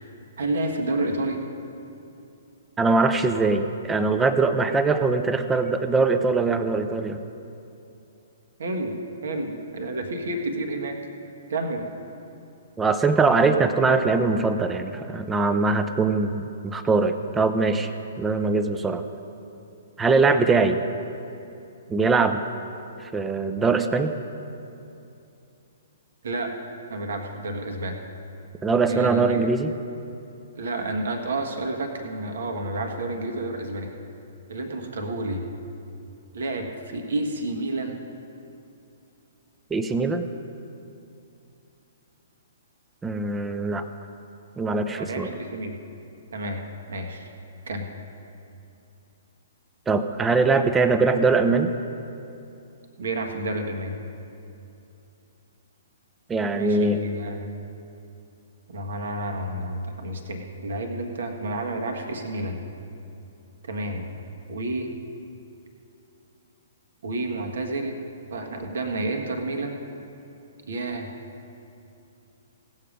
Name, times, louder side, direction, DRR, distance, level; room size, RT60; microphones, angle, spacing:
voice 1, 0.4-1.4 8.6-8.9 9.2-11.0 11.5-11.9 26.2-26.6 26.9-28.0 28.9-29.5 30.6-33.9 34.5-35.5 36.3-38.0 44.9-45.8 46.3-46.6 46.9-47.3 47.7-47.9 53.0-54.0 56.5-57.5 58.7-62.6 63.6-64.1 64.5-64.9 67.0-68.0 68.3-69.8 70.7-71.1, right 2 dB, 60° right, 3 dB, 1.5 m, -30 dB
voice 2, 2.8-7.2 12.8-17.9 18.2-19.0 20.0-20.8 21.9-22.4 23.0-24.1 28.6-29.7 39.7-40.3 43.0-43.8 44.6-45.3 49.9-51.7 56.3-57.0, right 4 dB, 10° right, 9 dB, 0.6 m, -22 dB
18.0 x 7.5 x 5.2 m, 2.8 s
figure-of-eight pair, 120°, 0 cm